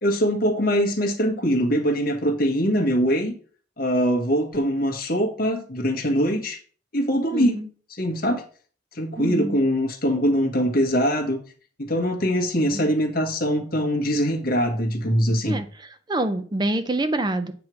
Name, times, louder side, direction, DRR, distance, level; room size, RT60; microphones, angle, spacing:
voice 1, 0.0-3.3 3.8-6.6 6.9-7.6 8.0-8.4 8.9-11.4 11.8-15.6, equal, 55° left, 1.4 m, -22 dB
voice 2, 7.3-7.7 9.2-9.6 12.7-12.9 15.5-17.5, right 1 dB, 25° right, 0.5 m, -27 dB
8.4 x 3.1 x 6.0 m
head